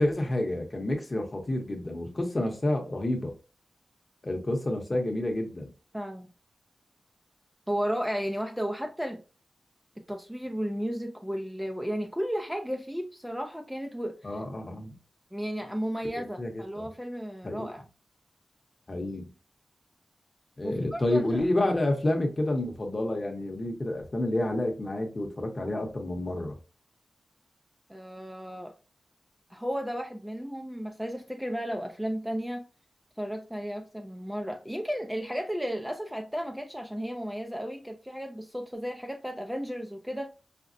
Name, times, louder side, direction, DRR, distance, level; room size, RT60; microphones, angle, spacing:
voice 1, 0.0-3.3 4.2-5.7 14.2-14.9 16.4-16.9 17.4-17.7 18.9-19.3 20.6-26.6, left 1 dB, 35° left, 0.8 m, -29 dB
voice 2, 5.9-6.3 7.7-9.2 10.1-14.4 15.3-17.8 20.6-21.4 27.9-28.7 29.5-32.6 33.2-40.3, equal, 5° right, 0.4 m, -34 dB
5.1 x 2.0 x 2.5 m
wide cardioid pair, 115°, 0 cm